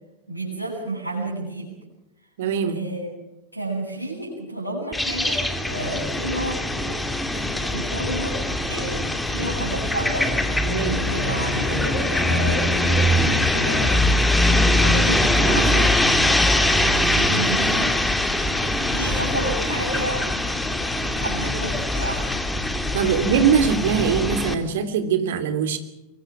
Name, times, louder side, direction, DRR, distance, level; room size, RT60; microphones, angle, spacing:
voice 1, 0.3-1.7 2.7-3.1 3.5-6.7 7.7-10.3 10.9-14.0 14.8-16.5 17.1-17.9 18.8-20.3 20.8-22.3 23.0-23.2, right 1 dB, 85° left, -1 dB, 7.6 m, -30 dB
voice 2, 2.4-2.8 10.6-11.0 22.9-25.8, right 7 dB, 55° right, 9 dB, 3.2 m, -22 dB
sound 1, 4.9-24.5, left 1 dB, 5° left, 2.4 m, -22 dB
sound 2, 6.0-13.6, left 2 dB, 25° left, 6.9 m, -38 dB
24.0 x 23.0 x 6.2 m, 0.92 s
figure-of-eight pair, 90°, 0 cm